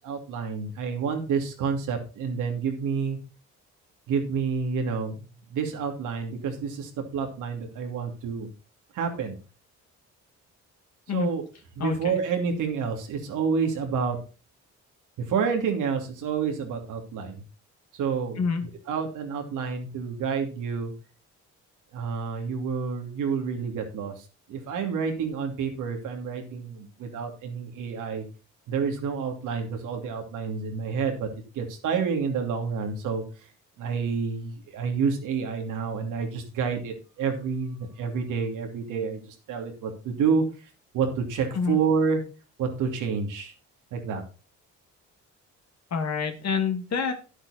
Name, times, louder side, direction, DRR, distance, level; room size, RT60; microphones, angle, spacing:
voice 1, 0.0-3.2 4.1-8.5 8.9-9.4 11.1-11.4 11.8-14.2 15.3-17.4 17.9-20.9 21.9-24.1 24.5-28.2 28.7-31.3 31.5-33.2 33.8-40.4 40.9-42.2 42.6-43.5 43.9-44.2, right 6 dB, 85° right, 3 dB, 2.7 m, -29 dB
voice 2, 11.8-12.2 18.4-18.6 41.5-41.8 45.9-47.1, left 5 dB, 60° left, 5 dB, 2.4 m, -27 dB
10.5 x 8.0 x 4.2 m, 0.33 s
cardioid pair, 90°, 30 cm